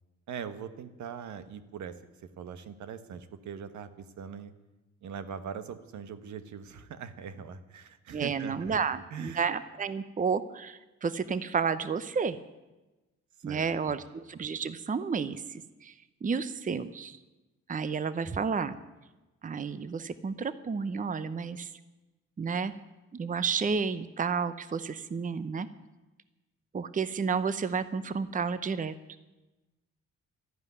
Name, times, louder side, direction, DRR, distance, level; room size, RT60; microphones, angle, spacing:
voice 1, 0.3-4.5 5.0-8.8 9.1-9.5 13.5-14.0, right 7 dB, 70° right, 11 dB, 1.3 m, -41 dB
voice 2, 8.1-12.4 13.4-15.9 16.2-17.2 17.7-18.8 19.4-21.7 22.4-22.7 23.1-25.7 26.7-28.9, right 5 dB, 25° right, 14 dB, 0.8 m, -31 dB
13.0 x 11.5 x 9.6 m, 1.1 s
cardioid pair, 90°, 30 cm